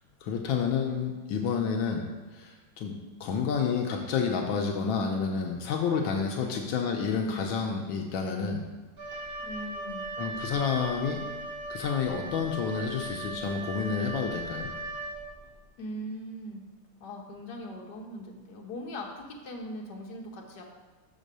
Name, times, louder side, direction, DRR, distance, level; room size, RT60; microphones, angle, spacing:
voice 1, 0.2-8.7 10.2-11.2 11.7-14.7, left 6 dB, 85° left, 2 dB, 1.5 m, -30 dB
voice 2, 6.4-6.8 9.4-10.2 15.8-16.6 17.0-20.8, equal, 60° left, 0 dB, 1.6 m, -40 dB
Wind instrument woodwind instrument, 9.0-15.5, right 2 dB, 35° right, 1.2 m, -38 dB
6.3 x 4.7 x 6.7 m, 1.3 s
omnidirectional pair, 2.1 m